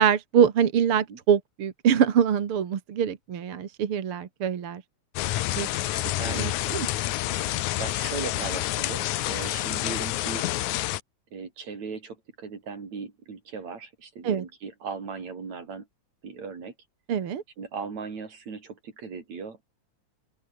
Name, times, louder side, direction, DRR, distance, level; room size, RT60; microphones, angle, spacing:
voice 1, 0.0-4.8 5.6-5.7 6.3-6.9 14.2-14.4 17.1-17.4, right 8 dB, 50° right, 2.3 m, -24 dB
sound 1, 5.2-11.0, left 15 dB, 80° left, 2.3 m, -28 dB
voice 2, 6.2-6.6 7.8-10.5 11.3-15.9 16.2-16.7 17.6-19.8, right 5 dB, 65° right, 5.4 m, -38 dB
open air
omnidirectional pair, 3.4 m